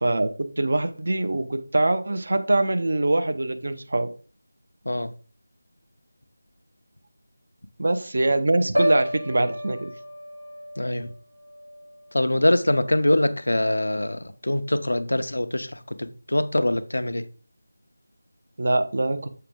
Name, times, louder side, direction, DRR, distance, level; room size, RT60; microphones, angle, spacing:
voice 1, 0.0-4.1 7.8-9.9 18.6-19.3, right 2 dB, 50° right, 0.8 m, -23 dB
Piano, 8.8-12.7 13.1-13.5, equal, 90° right, 3.1 m, -31 dB
voice 2, 10.8-11.1 12.1-15.7 16.0-17.2, left 1 dB, 65° left, 0.7 m, -23 dB
6.7 x 5.2 x 3.5 m
figure-of-eight pair, 165°, 0 cm